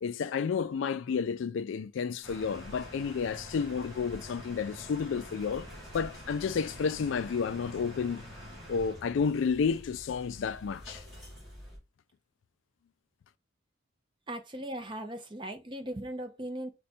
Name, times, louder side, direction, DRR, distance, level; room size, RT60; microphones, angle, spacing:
voice 1, 0.0-8.2 8.7-11.0, left 6 dB, 70° left, 0.3 m, -31 dB
sound 1, 2.2-11.8, left 1 dB, ahead, 2.9 m, -46 dB
voice 2, 14.3-16.7, right 1 dB, 25° right, 0.6 m, -38 dB
5.0 x 2.2 x 4.2 m
head